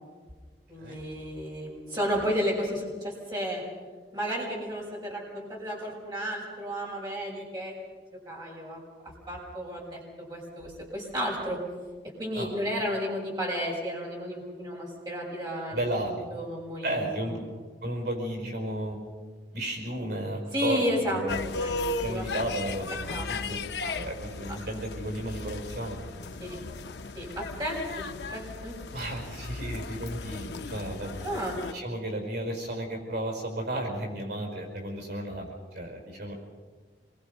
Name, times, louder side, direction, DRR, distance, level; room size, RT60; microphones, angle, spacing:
voice 1, 0.7-3.6 4.1-7.7 8.3-8.8 9.3-10.0 10.3-11.6 12.2-15.8 16.1-17.3 20.5-22.2 23.1-23.3 23.8-23.9 26.4-26.6 27.1-28.0 28.3-28.7 31.2-31.6, equal, 25° right, -3 dB, 5.9 m, -32 dB
voice 2, 15.7-16.1 16.8-17.5 17.8-19.0 19.5-21.5 22.0-23.6 23.9-26.4 28.9-31.1 31.7-35.5 35.7-36.3, right 1 dB, 70° right, 2 dB, 5.3 m, -33 dB
sound 1, 21.3-31.7, left 3 dB, 75° left, 0.6 m, -36 dB
26.5 x 23.0 x 5.4 m, 1.5 s
head